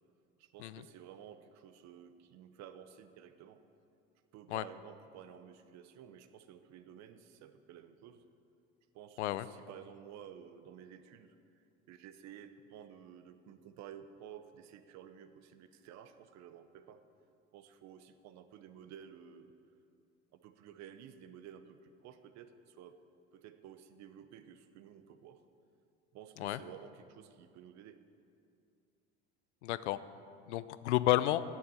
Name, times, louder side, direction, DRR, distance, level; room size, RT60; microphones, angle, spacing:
voice 1, 0.4-3.6 4.3-8.2 8.9-17.0 17.5-19.6 20.4-23.0 23.3-25.4 26.1-28.0, right 9 dB, 55° right, 10 dB, 0.8 m, -53 dB
voice 2, 29.6-30.0 30.5-31.4, left 15 dB, 85° left, 15 dB, 0.5 m, -31 dB
8.5 x 7.0 x 7.7 m, 2.5 s
hypercardioid pair, 85°, 33 cm